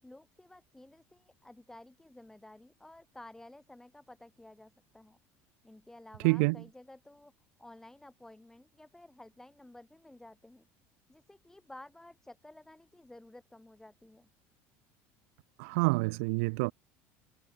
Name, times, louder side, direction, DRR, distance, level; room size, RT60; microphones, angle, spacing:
voice 1, 0.0-5.2 5.6-7.3 7.6-10.7 11.1-14.3, left 1 dB, 5° left, 4.2 m, -53 dB
voice 2, 6.2-6.6 15.6-16.7, right 28 dB, 80° right, 0.7 m, -27 dB
supercardioid pair, 105°, 7 cm